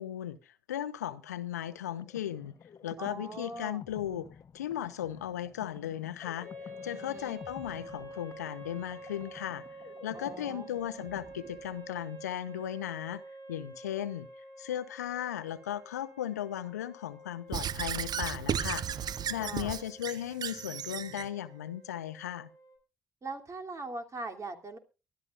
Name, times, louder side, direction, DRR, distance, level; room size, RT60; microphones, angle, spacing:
voice 1, 0.0-2.5 2.8-4.3 4.5-6.5 6.8-9.6 10.0-13.2 13.5-14.3 14.6-22.5, left 11 dB, 85° left, 15 dB, 0.7 m, -36 dB
sound 1, 1.7-12.2, left 7 dB, 45° left, 1.1 m, -52 dB
voice 2, 3.0-3.8 6.9-7.4 10.1-10.6 19.4-19.7 23.2-24.8, right 3 dB, 35° right, 4 dB, 2.9 m, -41 dB
sound 2, 6.4-22.7, right 1 dB, 80° right, 6.4 m, -49 dB
Squeak / Writing, 17.5-21.3, right 9 dB, 50° right, 0.8 m, -34 dB
23.5 x 12.5 x 2.5 m, 0.31 s
figure-of-eight pair, 45°, 9 cm